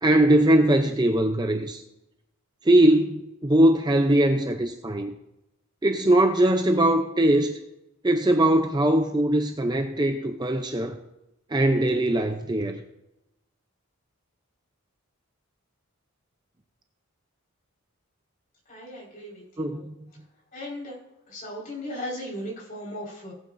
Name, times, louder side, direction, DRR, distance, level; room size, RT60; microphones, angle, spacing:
voice 1, 0.0-1.8 2.7-5.1 5.8-7.6 8.0-11.0 11.5-12.8 19.6-19.9, right 1 dB, 20° right, 0.6 m, -21 dB
voice 2, 18.7-19.8 20.5-20.9 21.3-23.3, left 1 dB, 40° left, 4.9 m, -37 dB
18.5 x 8.6 x 2.6 m
head